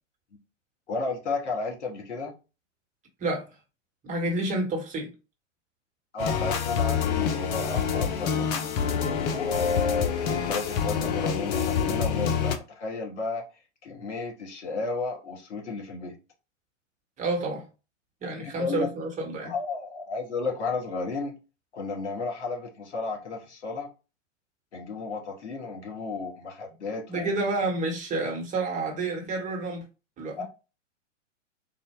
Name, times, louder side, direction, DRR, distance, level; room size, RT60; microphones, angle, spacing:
voice 1, 0.9-2.3 6.1-8.7 9.3-13.4 13.8-16.1 18.4-18.9 19.4-21.3 21.7-23.9 24.7-27.3 30.4-30.5, left 3 dB, 60° left, 1.6 m, -33 dB
voice 2, 4.0-5.1 17.2-17.6 18.2-19.5 27.1-29.8 30.2-30.4, right 2 dB, 20° right, 1.0 m, -29 dB
sound 1, 6.2-12.6, left 7 dB, 35° left, 0.6 m, -27 dB
3.9 x 2.1 x 3.4 m
figure-of-eight pair, 105°, 38 cm